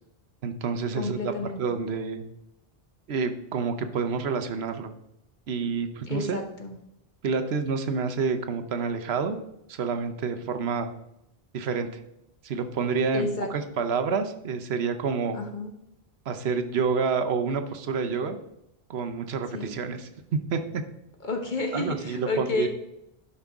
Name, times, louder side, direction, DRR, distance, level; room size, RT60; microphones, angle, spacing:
voice 1, 0.4-1.3 1.6-2.2 3.1-4.9 5.5-6.4 7.2-9.4 9.7-10.9 11.5-11.9 12.4-15.4 16.3-18.4 18.9-20.8 21.7-22.7, right 5 dB, 85° right, 8 dB, 1.0 m, -28 dB
voice 2, 0.9-1.6 6.1-6.8 13.1-13.5 15.3-15.7 19.5-19.7 21.2-22.7, left 3 dB, 50° left, 4 dB, 1.3 m, -30 dB
11.5 x 5.5 x 3.6 m, 0.82 s
omnidirectional pair, 1.0 m